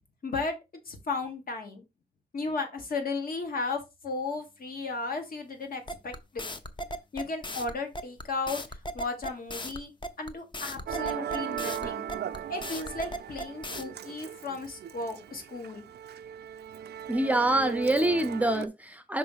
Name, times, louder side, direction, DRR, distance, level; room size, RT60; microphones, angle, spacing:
voice 1, 0.2-0.6 0.8-1.8 2.3-6.4 7.1-9.9 10.2-12.1 12.5-15.9, left 3 dB, 60° left, 1.8 m, -35 dB
sound 1, 5.9-13.8, equal, 30° left, 0.7 m, -37 dB
Musical instrument, 10.9-18.7, right 9 dB, 85° right, 0.5 m, -38 dB
voice 2, 17.1-19.2, right 1 dB, 10° right, 0.6 m, -25 dB
5.9 x 3.1 x 5.6 m
wide cardioid pair, 150°, 17 cm